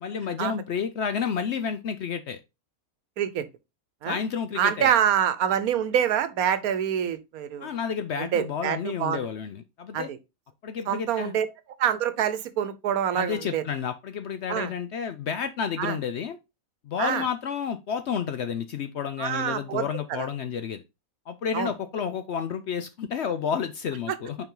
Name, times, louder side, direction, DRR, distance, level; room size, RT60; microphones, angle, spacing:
voice 1, 0.0-2.4 4.1-4.9 7.6-10.1 10.6-11.3 13.1-16.4 16.8-20.8 21.3-24.4, left 7 dB, 60° left, 0.7 m, -30 dB
voice 2, 4.6-7.7 8.2-9.2 9.9-10.2 10.9-11.5 11.8-13.6 14.5-14.7 15.8-16.0 17.0-17.2 19.2-19.8 20.1-20.3 21.5-21.7 24.1-24.2, right 9 dB, 80° right, 1.2 m, -26 dB
5.5 x 4.7 x 3.7 m
omnidirectional pair, 1.5 m